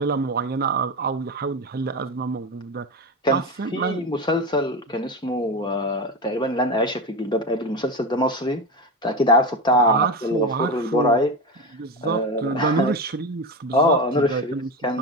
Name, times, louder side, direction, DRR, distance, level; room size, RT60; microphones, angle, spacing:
voice 1, 0.0-4.1 9.7-11.2 11.7-14.7 14.9-15.0, right 5 dB, 45° right, 0.6 m, -27 dB
voice 2, 3.7-8.6 9.0-11.3 12.0-12.9 13.7-14.5 14.8-15.0, left 1 dB, 20° left, 1.0 m, -23 dB
10.5 x 6.4 x 2.4 m
head